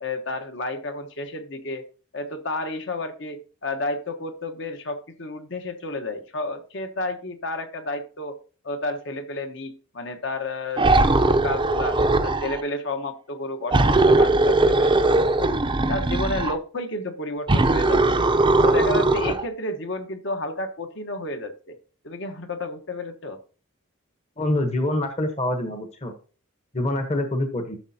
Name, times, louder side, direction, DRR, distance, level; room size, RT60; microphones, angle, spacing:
voice 1, 0.0-1.8 2.1-8.4 8.6-12.0 12.2-15.6 15.9-18.3 18.6-21.8 22.0-23.4, left 2 dB, 60° left, 7 dB, 1.1 m, -31 dB
sound 1, 10.8-12.6 13.7-16.6 17.5-19.4, right 2 dB, 25° right, 0.6 m, -19 dB
voice 2, 24.4-26.1 26.7-27.8, left 1 dB, 30° left, 6 dB, 1.0 m, -25 dB
12.0 x 6.5 x 2.8 m, 0.37 s
head